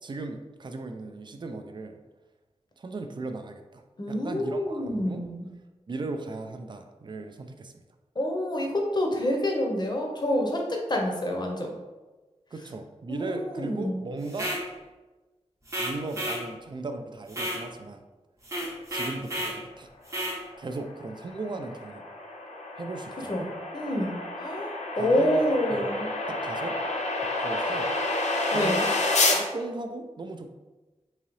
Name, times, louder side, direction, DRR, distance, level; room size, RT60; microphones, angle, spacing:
voice 1, 0.0-2.0 2.8-5.5 5.9-7.8 12.5-14.6 15.8-18.0 18.9-19.9 20.6-22.1 22.8-23.5 25.0-25.9 26.3-26.8 27.2-27.9 28.5-28.9 29.3-30.5, right 2 dB, 40° right, 6 dB, 0.4 m, -37 dB
voice 2, 4.0-5.5 8.2-11.7 13.1-14.0 23.3-26.1 28.5-28.8, left 1 dB, 40° left, 1 dB, 0.7 m, -28 dB
sound 1, 14.3-14.6 15.7-16.4 17.3-17.6 18.4-19.6 20.1-20.4, equal, 25° right, 0.8 m, -31 dB
sound 2, 20.8-29.4, left 2 dB, 85° left, 0.5 m, -29 dB
3.8 x 2.7 x 3.1 m, 1.2 s
wide cardioid pair, 90°, 12 cm